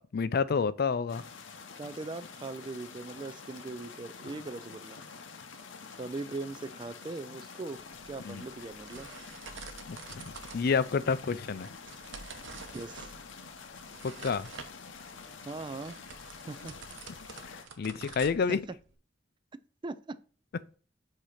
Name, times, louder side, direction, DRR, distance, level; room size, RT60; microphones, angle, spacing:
voice 1, 0.1-1.2 8.2-8.4 9.9-10.2 10.5-11.7 14.0-14.5 17.5-18.6, left 5 dB, 55° left, 0.4 m, -29 dB
sound 1, 1.1-17.6, left 5 dB, 85° left, 0.7 m, -48 dB
voice 2, 1.8-5.0 6.0-7.8 8.1-9.1 12.7-13.1 15.4-16.0 16.5-16.7 17.9-18.2 18.5-18.8 19.8-20.2, right 3 dB, 25° right, 0.4 m, -40 dB
sound 2, 7.8-19.0, right 5 dB, 80° right, 0.9 m, -49 dB
7.7 x 2.8 x 4.9 m
head